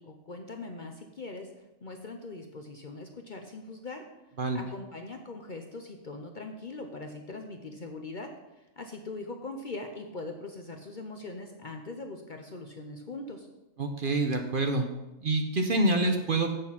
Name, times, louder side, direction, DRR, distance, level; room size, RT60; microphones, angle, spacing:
voice 1, 0.0-1.5 1.8-4.1 4.5-13.5, left 2 dB, 45° left, 4 dB, 0.7 m, -41 dB
voice 2, 13.8-14.9 15.2-16.5, right 2 dB, 45° right, 4 dB, 0.9 m, -26 dB
8.1 x 6.6 x 5.8 m, 1.0 s
omnidirectional pair, 1.4 m